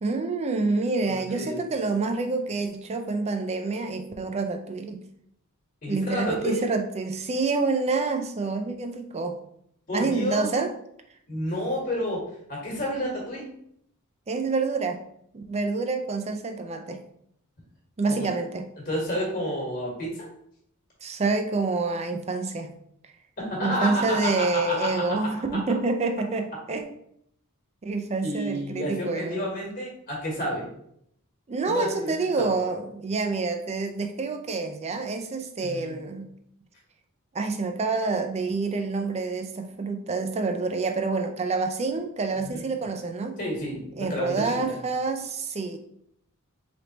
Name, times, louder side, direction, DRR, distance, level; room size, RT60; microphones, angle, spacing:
voice 1, 0.0-5.0 5.9-9.4 9.9-10.7 14.3-15.0 15.3-17.0 18.0-18.7 21.0-22.7 23.6-26.8 27.8-29.4 31.5-36.3 37.3-43.3 44.0-45.8, right 3 dB, 30° right, 5 dB, 0.4 m, -27 dB
voice 2, 1.1-1.7 5.8-6.6 9.9-10.5 11.3-13.5 18.1-18.3 18.8-20.2 23.4-25.0 28.2-30.7 31.7-32.5 35.6-35.9 42.4-42.6 43.4-44.6, equal, 40° left, -4 dB, 1.4 m, -30 dB
3.9 x 3.4 x 2.9 m, 0.70 s
head